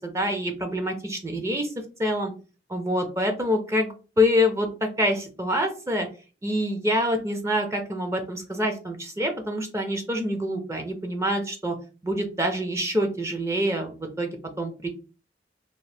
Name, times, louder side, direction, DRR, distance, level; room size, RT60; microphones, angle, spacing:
voice 1, 0.0-1.7 2.0-2.3 2.7-6.1 6.4-11.8 12.0-14.9, equal, 15° right, 4 dB, 0.4 m, -26 dB
2.8 x 2.6 x 3.2 m, 0.35 s
head